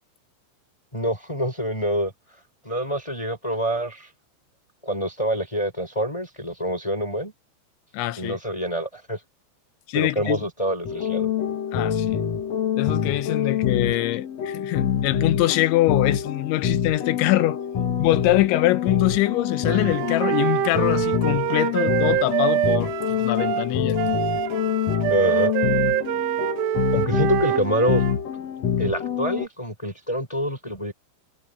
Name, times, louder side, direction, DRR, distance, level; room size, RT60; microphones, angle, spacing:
voice 1, 0.9-2.1 2.6-4.1 4.8-7.3 8.2-9.2 9.9-11.3 25.1-25.5 26.9-28.0 28.8-30.9, equal, 5° left, 4.5 m, -26 dB
voice 2, 7.9-8.4 9.9-10.4 11.7-12.2 12.7-17.6 18.0-24.0, left 17 dB, 85° left, 3.3 m, -24 dB
sound 1, 10.8-29.5, left 8 dB, 50° left, 2.2 m, -26 dB
Wind instrument woodwind instrument, 19.6-28.2, right 14 dB, 75° right, 3.0 m, -25 dB
omnidirectional pair, 5.2 m